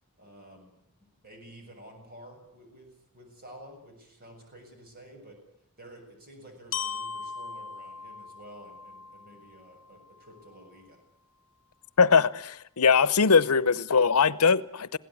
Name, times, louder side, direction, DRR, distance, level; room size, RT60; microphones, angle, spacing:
voice 1, 0.2-0.7 1.0-5.4 5.8-11.0, right 1 dB, 40° right, 7.1 m, -50 dB
Glockenspiel, 6.7-10.7, left 6 dB, 60° left, 1.1 m, -39 dB
voice 2, 12.0-15.0, left 5 dB, 85° left, 0.8 m, -21 dB
21.0 x 17.0 x 9.8 m
head